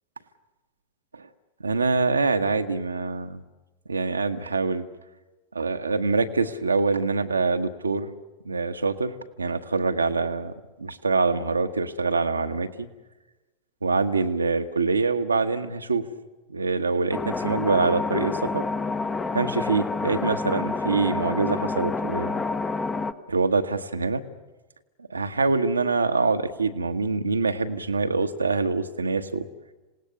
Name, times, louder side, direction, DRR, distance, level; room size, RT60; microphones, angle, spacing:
voice 1, 1.6-3.4 3.9-4.8 5.5-8.1 8.4-10.5 10.8-12.9 13.8-16.0 16.5-18.7 19.3-22.3 23.3-24.2 25.1-29.5, right 4 dB, 80° right, 7 dB, 1.2 m, -25 dB
sound 1, 17.1-23.1, left 3 dB, 15° left, 1.0 m, -28 dB
27.0 x 18.5 x 7.0 m, 1.1 s
figure-of-eight pair, 90°, 0 cm